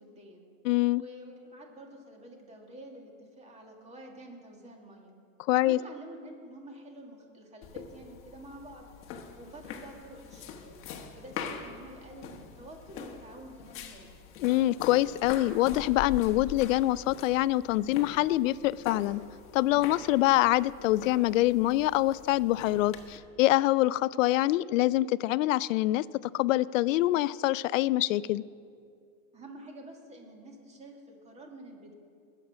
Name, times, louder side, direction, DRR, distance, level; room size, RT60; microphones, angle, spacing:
voice 1, 0.0-0.5 1.0-5.1 5.6-10.8 11.1-14.1 29.3-31.9, right 1 dB, 15° right, 1 dB, 2.1 m, -48 dB
voice 2, 0.6-1.0 5.5-5.8 14.4-19.2 19.5-26.1 26.3-28.4, left 16 dB, 75° left, 20 dB, 0.5 m, -25 dB
sound 1, 7.6-23.2, left 6 dB, 30° left, 1.3 m, -43 dB
20.0 x 7.8 x 6.1 m, 2.3 s
supercardioid pair, 140°, 40 cm